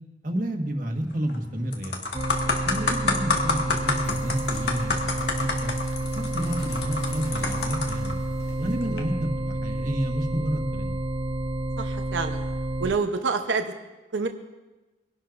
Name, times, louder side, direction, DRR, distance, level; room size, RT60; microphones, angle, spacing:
voice 1, 0.2-2.0 2.6-5.7 6.1-8.2 8.6-10.9, right 1 dB, 50° right, 2 dB, 1.5 m, -30 dB
sound 1, 1.1-1.4 1.7-8.1 8.8-9.0, left 4 dB, 65° left, 1.6 m, -28 dB
sound 2, 2.1-12.9, right 1 dB, 30° right, 0.5 m, -30 dB
sound 3, 3.8-8.9, equal, 85° left, 5.2 m, -47 dB
voice 2, 11.8-12.4 12.8-13.7 14.1-14.3, right 4 dB, 85° right, 5 dB, 0.8 m, -27 dB
24.0 x 11.5 x 2.6 m, 1.1 s
head